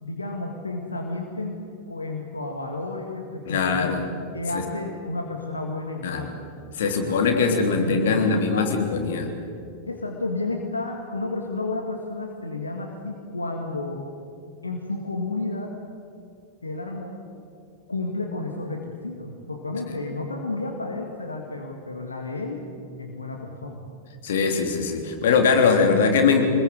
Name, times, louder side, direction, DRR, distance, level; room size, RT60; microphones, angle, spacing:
voice 1, 0.0-6.4 6.9-8.7 9.9-14.0 14.6-15.7 16.6-17.2 17.9-22.6 23.0-23.9, left 2 dB, 80° left, 2 dB, 2.0 m, -31 dB
voice 2, 3.5-4.0 4.5-4.6 6.0-6.2 6.8-9.3 24.2-26.4, left 5 dB, 60° left, 4 dB, 3.2 m, -21 dB
25.5 x 21.0 x 7.8 m, 2.5 s
figure-of-eight pair, 90°, 0 cm